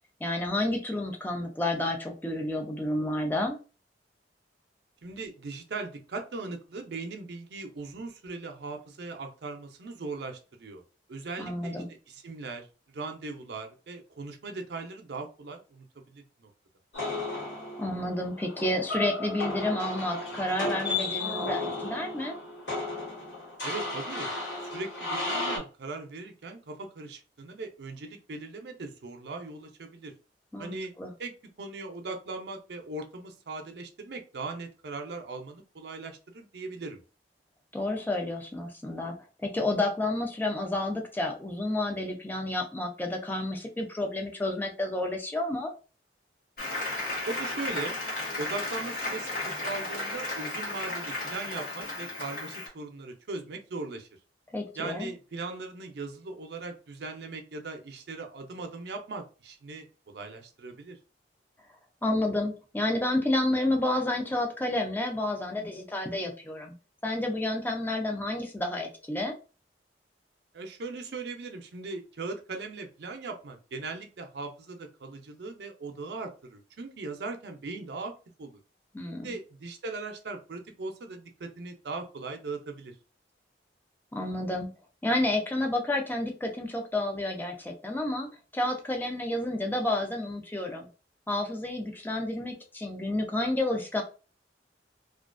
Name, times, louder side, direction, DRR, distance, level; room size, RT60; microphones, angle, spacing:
voice 1, 0.2-3.6 11.4-11.9 17.8-22.3 30.5-31.1 37.7-39.2 39.4-45.7 54.5-55.1 62.0-66.7 67.0-69.3 78.9-79.3 84.1-84.7 85.0-90.9 91.3-94.0, left 1 dB, 10° left, 2 dB, 0.4 m, -30 dB
voice 2, 5.0-10.8 11.1-12.7 12.9-15.8 16.1-16.5 23.6-24.3 24.6-30.1 30.6-30.9 31.2-37.0 47.3-47.9 48.4-54.1 54.8-59.8 60.1-61.0 70.5-78.1 78.4-78.6 79.1-82.9, right 3 dB, 65° right, 4 dB, 0.5 m, -39 dB
sound 1, 16.9-25.6, left 2 dB, 85° left, 1.4 m, -34 dB
Applause, 46.6-52.7, left 2 dB, 55° left, 0.9 m, -34 dB
2.4 x 2.2 x 2.4 m, 0.34 s
head